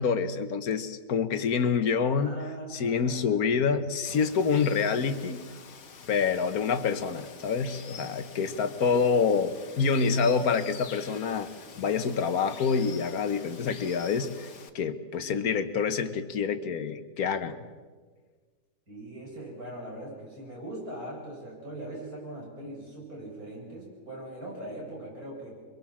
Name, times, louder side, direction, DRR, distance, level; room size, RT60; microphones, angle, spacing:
voice 1, 0.0-2.4 2.7-5.4 6.1-11.5 11.8-14.5 14.7-17.6, left 5 dB, 65° left, 11 dB, 1.6 m, -27 dB
voice 2, 2.2-3.5 4.1-4.3 18.9-25.5, right 1 dB, 60° right, -3 dB, 8.2 m, -41 dB
Water, 4.1-14.7, left 6 dB, 85° left, 2.1 m, -47 dB
24.0 x 22.5 x 7.4 m, 1.5 s
omnidirectional pair, 1.7 m